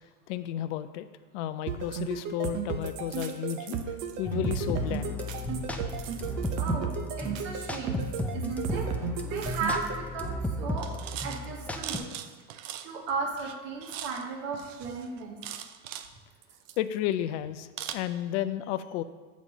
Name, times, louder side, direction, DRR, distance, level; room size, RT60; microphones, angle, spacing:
voice 1, 0.3-1.1 1.3-3.8 4.2-5.1 16.8-19.0, left 11 dB, 75° left, 12 dB, 0.5 m, -32 dB
sound 1, 1.7-9.9, right 7 dB, 50° right, 0.8 m, -34 dB
sound 2, 2.8-4.2 4.6-4.9 5.2-7.3 8.0-8.9 9.2-10.0 10.3-10.5 10.8-13.1 13.4-14.3 14.5-16.1 16.4-17.1 17.8-17.9, right 11 dB, 85° right, 0.6 m, -43 dB
sound 3, 4.2-12.0, left 1 dB, 5° left, 0.5 m, -34 dB
voice 2, 6.6-6.9 7.2-8.0 8.3-8.9 9.2-10.9 11.2-12.1 12.8-15.4, right 4 dB, 70° right, -1 dB, 1.9 m, -35 dB
7.2 x 4.2 x 5.9 m, 1.3 s
supercardioid pair, 110°, 37 cm